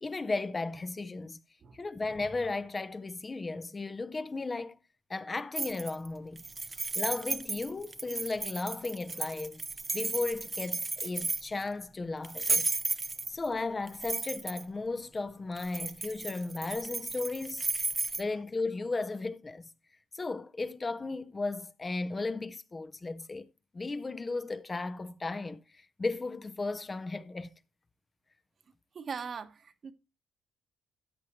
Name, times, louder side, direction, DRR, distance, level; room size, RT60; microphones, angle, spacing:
voice 1, 0.0-1.4 1.7-4.8 5.1-6.4 7.0-9.6 9.9-12.7 13.3-17.7 18.2-19.7 20.1-23.5 23.7-27.5, left 3 dB, 25° left, 0.7 m, -35 dB
sound 1, 5.5-6.1 6.4-11.6 12.2-13.5 13.9-14.6 15.6-18.2, right 3 dB, 25° right, 0.8 m, -34 dB
voice 2, 28.9-29.9, right 6 dB, 50° right, 1.2 m, -40 dB
14.0 x 9.4 x 3.2 m
cardioid pair, 90°, 0 cm